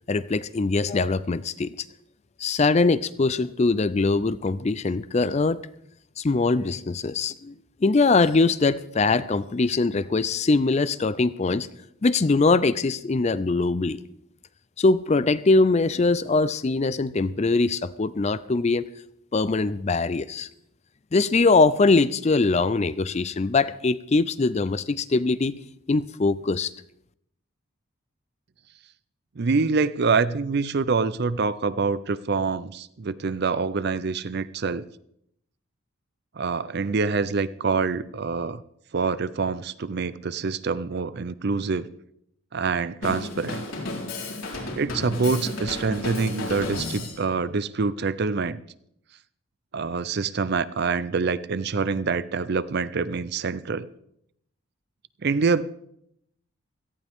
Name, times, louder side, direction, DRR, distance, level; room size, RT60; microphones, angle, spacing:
voice 1, 0.1-1.7 2.4-5.6 6.2-7.5 7.8-11.7 12.0-14.0 14.8-18.9 19.3-20.5 21.1-25.6 25.9-26.7, left 3 dB, 30° left, 16 dB, 0.4 m, -22 dB
voice 2, 29.4-34.8 36.4-38.6 38.9-41.9 42.5-43.7 44.8-48.6 49.7-53.9 55.2-55.6, right 4 dB, 50° right, 16 dB, 0.5 m, -26 dB
Drum kit, 43.0-47.2, left 2 dB, 75° left, 4.1 m, -33 dB
17.5 x 14.5 x 3.6 m, 0.73 s
head